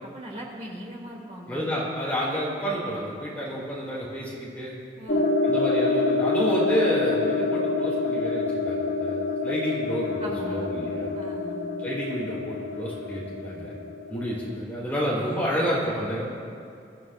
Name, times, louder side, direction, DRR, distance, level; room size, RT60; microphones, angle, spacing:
voice 1, 0.0-1.7 5.0-5.3 10.2-10.7 11.1-11.7, right 1 dB, 40° right, -2 dB, 2.8 m, -39 dB
voice 2, 1.5-4.7 5.4-11.1 11.8-13.7 14.1-16.3, equal, 10° left, -7 dB, 3.9 m, -29 dB
sound 1, 5.1-14.6, left 3 dB, 50° left, 0.6 m, -27 dB
24.0 x 13.0 x 2.6 m, 2.5 s
head